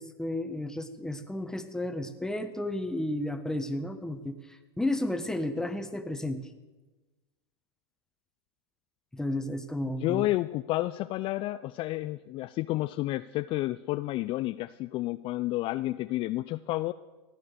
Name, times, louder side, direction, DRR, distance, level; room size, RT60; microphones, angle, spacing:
voice 1, 0.0-6.5 9.1-10.3, left 1 dB, 5° left, 8 dB, 1.2 m, -33 dB
voice 2, 10.0-16.9, left 17 dB, 40° left, 13 dB, 0.4 m, -30 dB
16.0 x 9.8 x 6.8 m, 1.2 s
hypercardioid pair, 105°, 14 cm